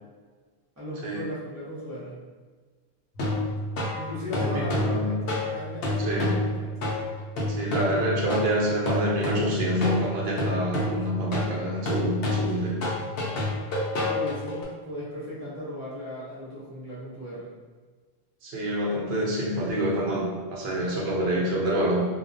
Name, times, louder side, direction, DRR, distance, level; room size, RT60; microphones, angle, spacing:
voice 1, 0.8-2.2 3.9-5.2 5.5-6.7 14.0-17.5, left 1 dB, 20° right, -9 dB, 0.7 m, -36 dB
sound 1, 3.2-14.6, left 1 dB, 75° left, 0.8 m, -29 dB
voice 2, 4.3-5.1 6.0-6.3 7.5-12.7 18.4-22.0, right 1 dB, 80° right, -3 dB, 0.8 m, -27 dB
2.2 x 2.2 x 2.5 m, 1.4 s
omnidirectional pair, 1.0 m